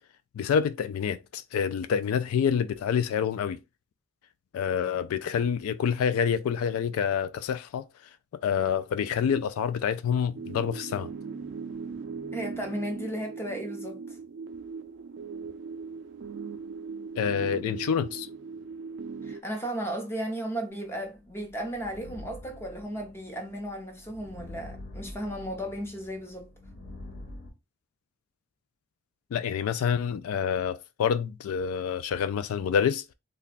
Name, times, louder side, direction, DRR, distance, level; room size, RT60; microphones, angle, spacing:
voice 1, 0.4-3.6 4.5-7.8 8.4-11.1 17.2-18.3 29.3-33.0, left 7 dB, 80° left, 0.3 m, -27 dB
sound 1, 10.3-19.4, right 5 dB, 55° right, 0.4 m, -39 dB
voice 2, 12.3-14.2 19.2-26.5, right 1 dB, 10° left, 0.7 m, -35 dB
sound 2, 21.0-27.5, left 1 dB, 55° left, 1.2 m, -46 dB
3.3 x 2.2 x 4.0 m
head